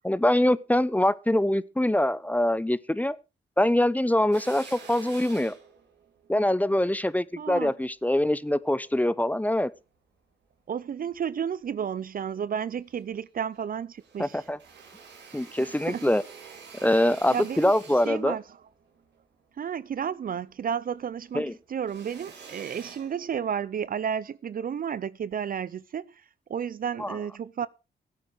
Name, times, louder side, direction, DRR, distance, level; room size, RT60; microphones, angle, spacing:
voice 1, 0.0-3.2 3.6-5.5 6.3-9.7 14.2-14.6 15.3-16.2 16.8-18.4 21.3-21.5 27.0-27.1, left 1 dB, 10° left, 0.8 m, -24 dB
Drill, 4.3-8.9 9.4-10.6 11.0-12.0 12.3-12.4 12.7-13.7 14.0-20.6 20.9-23.8, right 5 dB, 80° right, 3.3 m, -49 dB
voice 2, 7.4-7.7 10.7-14.4 15.6-16.1 17.3-17.7 18.1-18.4 19.6-26.2 26.5-27.7, right 8 dB, 55° right, 0.5 m, -32 dB
15.5 x 8.6 x 4.8 m
cardioid pair, 55°, 18 cm